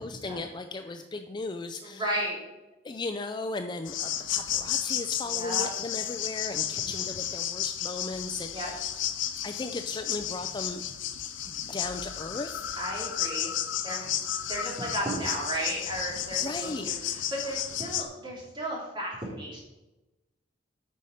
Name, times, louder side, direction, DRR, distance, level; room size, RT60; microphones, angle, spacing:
voice 1, 0.0-2.0 2.8-8.8 9.4-10.8 11.5-12.8 16.4-17.0, left 3 dB, 25° left, 8 dB, 0.4 m, -36 dB
voice 2, 1.8-2.4 5.2-5.7 6.7-7.0 8.5-8.7 12.8-13.5 13.8-14.1 14.5-19.6, right 1 dB, 25° right, -4 dB, 2.8 m, -34 dB
sound 1, 3.9-18.0, left 10 dB, 85° left, 0.7 m, -33 dB
9.1 x 5.6 x 5.0 m, 1.0 s
head